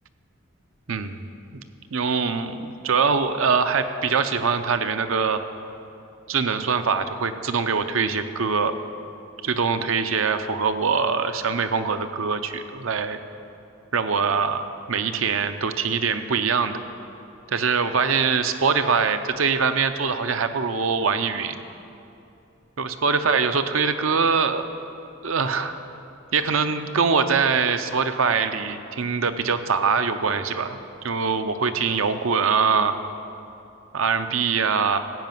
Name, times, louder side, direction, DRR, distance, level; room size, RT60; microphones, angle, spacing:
voice 1, 1.9-5.4 6.3-8.7 9.4-13.2 13.9-16.8 17.5-21.6 22.8-24.6 25.2-25.7 26.3-30.8 31.0-33.0 33.9-35.0, right 5 dB, 75° right, 9 dB, 0.7 m, -23 dB
15.5 x 5.1 x 9.2 m, 2.7 s
head